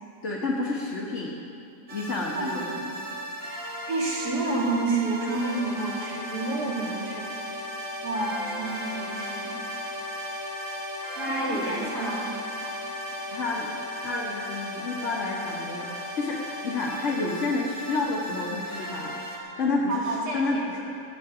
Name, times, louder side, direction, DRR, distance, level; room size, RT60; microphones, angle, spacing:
voice 1, 0.2-1.3 1.9-3.1 11.5-12.1 13.3-19.2 19.6-20.8, left 3 dB, 50° left, -4 dB, 1.5 m, -30 dB
sound 1, 1.9-19.4, equal, 55° right, 2.1 m, -36 dB
voice 2, 3.9-7.3 8.0-9.6 11.1-12.3 19.9-20.7, right 2 dB, 80° right, -4 dB, 3.1 m, -29 dB
14.5 x 6.9 x 9.4 m, 2.6 s
omnidirectional pair, 1.7 m